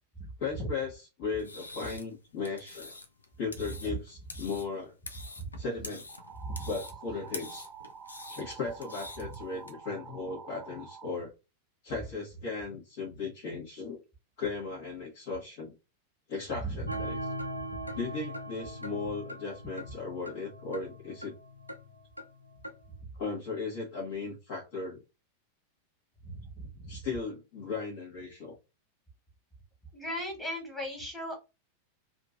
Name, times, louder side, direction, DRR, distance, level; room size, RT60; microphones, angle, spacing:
voice 1, 0.4-3.0 3.4-4.9 5.6-6.0 6.7-7.7 8.3-11.3 11.8-14.0 14.4-15.7 16.3-17.2 17.9-21.3 23.2-25.0 26.9-28.5, left 4 dB, 50° left, -5 dB, 1.2 m, -36 dB
sound 1, 1.3-9.7, left 3 dB, 75° left, 0.5 m, -46 dB
sound 2, 6.1-11.1, right 6 dB, 20° right, 0.4 m, -48 dB
voice 2, 16.5-17.0 26.2-26.9 29.9-31.3, right 1 dB, 10° left, -1 dB, 1.6 m, -37 dB
sound 3, 16.9-22.9, equal, 90° right, 0.6 m, -40 dB
2.9 x 2.6 x 2.5 m, 0.27 s
figure-of-eight pair, 90°, 0 cm